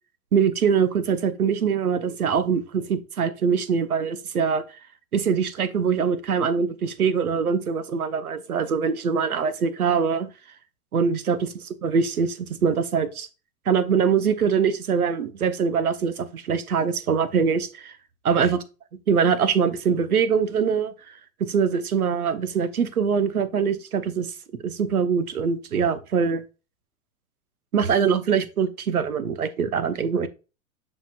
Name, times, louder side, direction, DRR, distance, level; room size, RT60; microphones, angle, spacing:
voice 1, 0.3-4.6 5.1-10.3 10.9-11.5 11.8-13.3 13.7-17.9 18.3-18.6 19.1-20.9 21.4-24.3 24.6-26.4 27.7-30.3, right 6 dB, 85° right, 1.0 m, -23 dB
7.2 x 6.0 x 2.4 m
hypercardioid pair, 100°, 43 cm